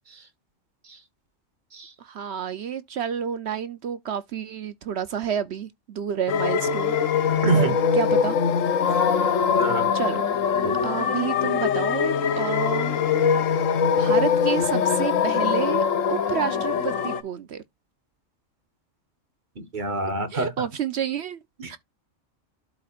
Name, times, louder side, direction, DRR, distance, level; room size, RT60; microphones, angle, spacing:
voice 1, 2.0-7.0 7.5-8.4 8.9-9.4 9.9-10.3 10.8-13.0 13.8-15.8 16.1-17.6 20.3-21.4 21.7-21.8, right 8 dB, 60° right, 0.9 m, -30 dB
sound 1, 6.3-17.2, left 7 dB, 80° left, 1.2 m, -22 dB
voice 2, 7.4-7.7 9.6-9.9 10.6-10.8 19.6-20.7 21.6-21.8, right 2 dB, 40° right, 1.2 m, -26 dB
12.0 x 4.2 x 2.4 m
omnidirectional pair, 1.3 m